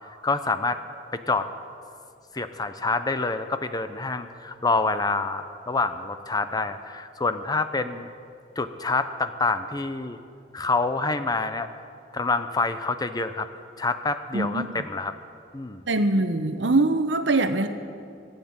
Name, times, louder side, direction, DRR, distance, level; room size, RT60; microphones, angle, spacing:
voice 1, 0.2-0.8 1.3-1.5 2.3-8.1 8.6-10.2 10.5-11.7 12.1-13.5 13.8-15.1 15.5-15.8, left 3 dB, 20° left, 10 dB, 0.6 m, -27 dB
voice 2, 14.3-14.7 15.9-17.7, right 2 dB, 70° right, 9 dB, 0.9 m, -22 dB
16.0 x 8.1 x 8.7 m, 2.4 s
head